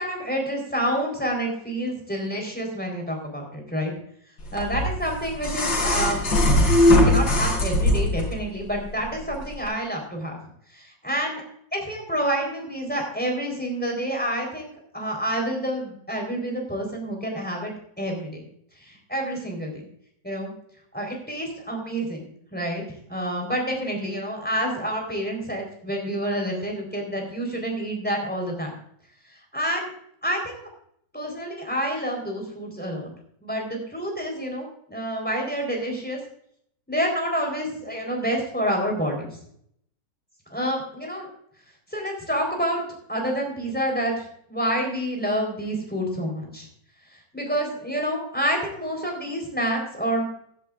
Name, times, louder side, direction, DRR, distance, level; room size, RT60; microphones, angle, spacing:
voice 1, 0.0-3.9 4.5-6.2 6.9-10.4 10.7-11.4 11.7-17.7 18.0-18.4 18.8-19.9 20.2-20.5 20.9-22.8 23.1-28.7 29.5-29.9 30.2-30.7 31.1-33.1 33.4-36.2 36.9-39.3 40.5-41.3 41.9-42.8 43.1-46.7 47.3-50.2, equal, 5° left, 1 dB, 3.9 m, -28 dB
sound 1, 4.6-8.3 9.6-9.7, left 1 dB, 75° left, 4.0 m, -20 dB
15.5 x 11.5 x 2.5 m, 0.67 s
omnidirectional pair, 2.1 m